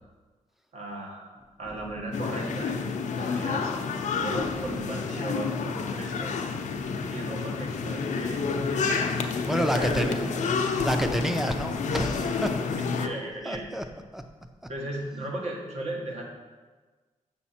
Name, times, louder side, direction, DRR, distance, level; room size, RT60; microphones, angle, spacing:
voice 1, 0.7-1.3 1.6-3.8 4.2-6.3 7.1-9.0 9.8-10.3 12.8-13.6 14.7-16.2, right 1 dB, 60° right, -1 dB, 1.6 m, -36 dB
sound 1, 2.1-13.1, left 5 dB, 75° left, 0.6 m, -29 dB
voice 2, 9.5-12.6 13.5-13.8 14.1-14.2, equal, ahead, 6 dB, 0.5 m, -29 dB
7.2 x 5.9 x 4.3 m, 1.3 s
wide cardioid pair, 125°, 13 cm